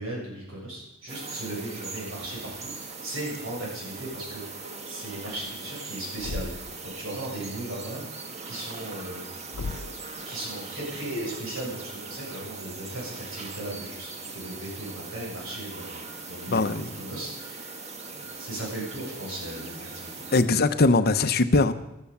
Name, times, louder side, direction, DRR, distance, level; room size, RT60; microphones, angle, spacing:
voice 1, 0.0-8.0 8.5-9.2 9.7-9.9 10.3-17.7 18.1-20.2, right 1 dB, 65° right, -3 dB, 7.8 m, -37 dB
sound 1, 1.1-20.4, right 4 dB, 30° right, 1.6 m, -40 dB
Thump thud, 6.2-6.8 9.5-10.1, left 3 dB, 90° left, 0.6 m, -35 dB
voice 2, 16.5-16.8 20.3-21.7, left 3 dB, 45° left, 10 dB, 0.9 m, -21 dB
14.0 x 13.0 x 7.2 m, 0.89 s
head